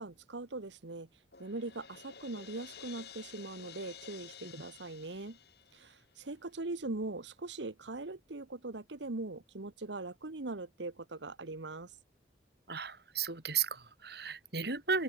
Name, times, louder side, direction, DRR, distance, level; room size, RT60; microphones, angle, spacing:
voice 1, 0.0-5.4 5.7-12.0, right 2 dB, 85° right, 1.3 m, -41 dB
Crash cymbal, 1.3-6.3, left 7 dB, 65° left, 5.3 m, -52 dB
voice 2, 12.7-15.0, right 6 dB, 60° right, 4.7 m, -34 dB
open air
head